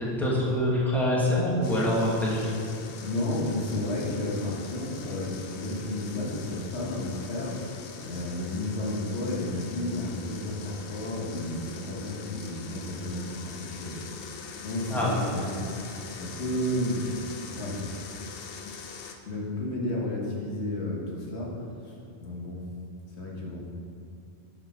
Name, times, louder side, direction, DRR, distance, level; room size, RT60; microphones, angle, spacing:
voice 1, 0.0-2.5 14.9-15.1, left 1 dB, ahead, -7 dB, 1.5 m, -25 dB
sound 1, 1.6-19.2, left 6 dB, 65° left, 0.8 m, -42 dB
voice 2, 2.8-14.0 14.6-15.6 16.1-17.1 17.5-17.8 19.3-21.9 22.2-22.6 23.2-23.6, left 1 dB, 85° left, -3 dB, 1.6 m, -32 dB
7.2 x 5.0 x 5.6 m, 2.5 s
omnidirectional pair, 1.1 m